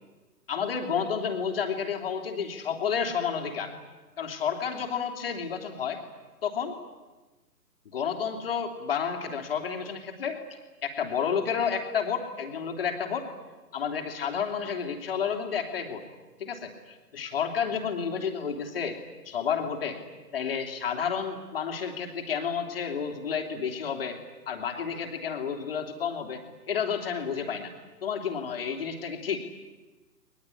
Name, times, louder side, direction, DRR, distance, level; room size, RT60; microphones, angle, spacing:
voice 1, 0.5-3.7 4.2-6.0 6.4-6.7 7.9-13.3 13.7-16.0 16.4-19.0 19.2-20.0 20.3-24.2 24.5-27.7 28.0-29.4, left 7 dB, 35° left, 4 dB, 3.3 m, -31 dB
22.0 x 21.5 x 10.0 m, 1.2 s
figure-of-eight pair, 140°, 49 cm